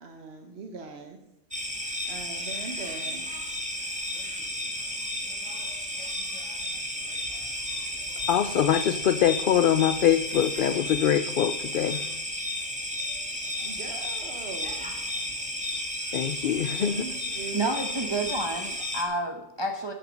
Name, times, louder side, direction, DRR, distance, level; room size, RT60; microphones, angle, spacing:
voice 1, 0.0-1.2 2.1-3.3 13.4-15.0 16.8-17.6, right 4 dB, 60° right, 4 dB, 1.3 m, -41 dB
sound 1, 1.5-19.0, left 1 dB, 5° right, 1.7 m, -33 dB
voice 2, 8.3-12.0 16.1-16.9, left 10 dB, 60° left, 12 dB, 0.6 m, -23 dB
voice 3, 17.5-19.9, right 2 dB, 25° right, 3 dB, 0.9 m, -30 dB
14.5 x 8.6 x 5.1 m, 0.92 s
omnidirectional pair, 1.3 m